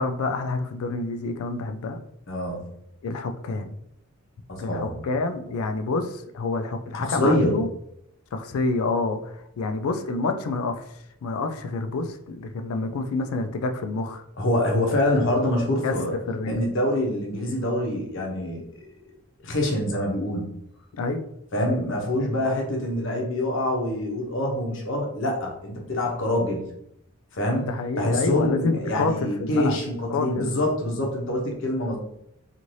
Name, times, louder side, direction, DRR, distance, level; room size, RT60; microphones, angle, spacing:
voice 1, 0.0-2.0 3.0-3.7 4.6-7.7 8.3-10.8 11.2-14.2 15.8-16.0 16.3-16.6 20.9-21.2 21.5-21.8 27.6-29.8 30.1-30.5, left 3 dB, 75° left, 7 dB, 0.4 m, -28 dB
voice 2, 2.3-2.7 4.5-5.0 7.0-7.6 14.4-16.1 16.4-18.6 19.4-20.5 21.5-26.7 27.3-32.0, left 1 dB, 60° left, 0 dB, 0.8 m, -25 dB
2.6 x 2.5 x 3.1 m, 0.76 s
head